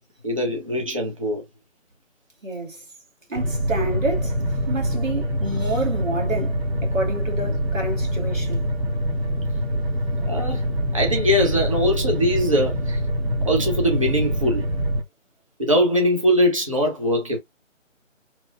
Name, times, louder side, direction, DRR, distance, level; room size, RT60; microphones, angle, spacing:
voice 1, 0.2-1.4 10.3-10.7 10.9-13.0 13.5-14.6 15.6-17.4, equal, 25° right, 0.6 m, -21 dB
voice 2, 2.4-2.8 3.3-8.7, right 2 dB, 80° right, 1.8 m, -29 dB
sound 1, 3.3-15.0, equal, 55° right, 1.2 m, -25 dB
3.0 x 2.3 x 2.3 m
figure-of-eight pair, 155°, 39 cm